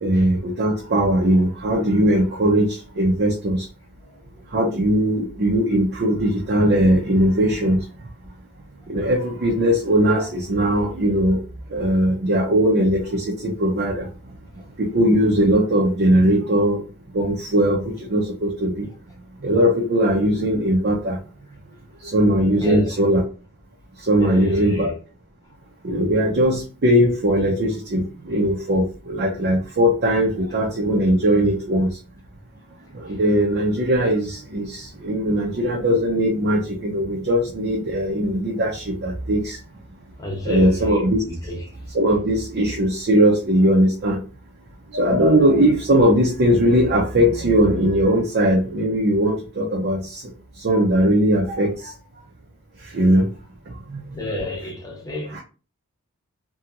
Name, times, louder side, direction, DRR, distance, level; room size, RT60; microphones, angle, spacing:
voice 1, 0.0-3.7 4.5-7.8 8.9-11.4 11.7-14.1 14.8-16.8 17.1-18.9 19.4-21.2 22.1-23.2 24.1-24.9 25.8-31.9 33.0-39.6 40.4-41.2 41.9-44.2 44.9-50.2 50.6-51.9 52.9-53.3 53.9-54.0, equal, 50° right, 0.6 m, -19 dB
voice 2, 22.6-22.9 24.2-25.0 33.1-33.2 40.2-41.7 54.1-55.4, left 1 dB, 15° left, 0.8 m, -29 dB
2.8 x 2.7 x 2.4 m
head